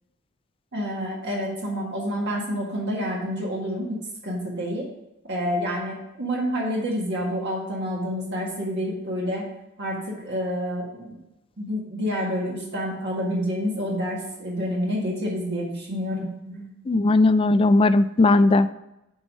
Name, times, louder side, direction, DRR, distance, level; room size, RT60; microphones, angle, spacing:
voice 1, 0.7-4.0 4.2-4.9 5.3-9.5 9.8-10.0 10.2-11.2 11.6-16.7, equal, 50° right, -2 dB, 1.7 m, -28 dB
voice 2, 16.9-18.7, left 2 dB, 25° left, 13 dB, 0.3 m, -18 dB
8.3 x 4.8 x 5.4 m, 0.90 s
head